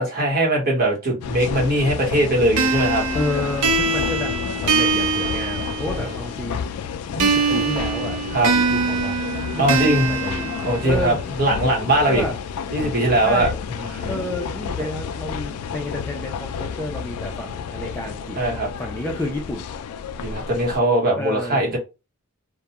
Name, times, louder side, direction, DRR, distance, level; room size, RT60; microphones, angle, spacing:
voice 1, 0.0-3.0 4.0-4.1 6.0-6.2 8.3-8.5 9.6-10.2 10.6-12.2 12.7-13.5 13.7-14.1 18.4-18.7 20.2-21.8, right 1 dB, 45° right, 1.1 m, -20 dB
sound 1, 1.2-20.8, left 6 dB, 80° left, 0.3 m, -31 dB
sound 2, 2.6-6.2 7.2-11.2, right 4 dB, 85° right, 0.5 m, -23 dB
voice 2, 3.1-6.6 7.1-9.2 9.5-10.5 10.8-11.2 12.1-12.4 13.3-13.6 14.1-18.4 18.8-19.7 21.2-21.7, left 2 dB, 10° left, 0.4 m, -30 dB
2.3 x 2.2 x 2.9 m
head